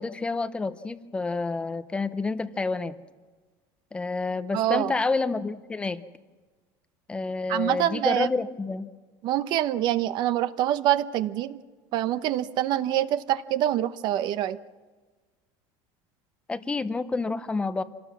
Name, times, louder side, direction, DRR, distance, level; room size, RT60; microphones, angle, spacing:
voice 1, 0.0-2.9 3.9-6.0 7.1-8.9 16.5-17.8, left 3 dB, 10° left, 12 dB, 0.7 m, -29 dB
voice 2, 4.5-4.9 7.5-8.3 9.2-11.6 11.9-14.6, right 12 dB, 45° right, 13 dB, 0.9 m, -25 dB
27.0 x 18.5 x 7.3 m, 1.4 s
cardioid pair, 175°, 10 cm